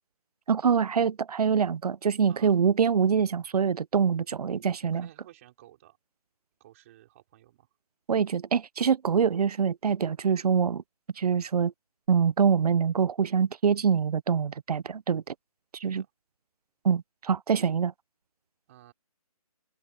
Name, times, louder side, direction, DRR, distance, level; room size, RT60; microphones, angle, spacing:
voice 1, 0.5-5.1 8.1-10.8 11.2-11.7 12.1-15.3 15.7-16.0 16.8-17.9, right 6 dB, 85° right, 0.5 m, -25 dB
voice 2, 2.3-2.6 4.8-6.0 6.6-7.7 15.8-16.1 18.7-18.9, right 14 dB, 20° right, 4.7 m, -54 dB
hypercardioid pair, 165°, 19 cm